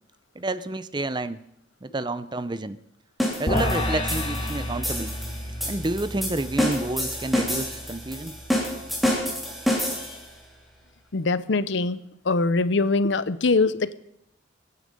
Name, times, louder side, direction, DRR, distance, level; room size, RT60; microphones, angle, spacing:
voice 1, 0.4-1.4 1.8-2.8 3.4-5.2 5.7-8.4, right 2 dB, 20° right, 14 dB, 0.6 m, -29 dB
sound 1, 3.2-10.3, equal, ahead, 3.1 m, -28 dB
sound 2, 3.5-9.8, left 1 dB, 30° left, 2.4 m, -31 dB
voice 2, 11.1-12.0 12.3-13.9, left 3 dB, 65° left, 16 dB, 0.7 m, -22 dB
21.5 x 9.8 x 5.3 m, 0.79 s
head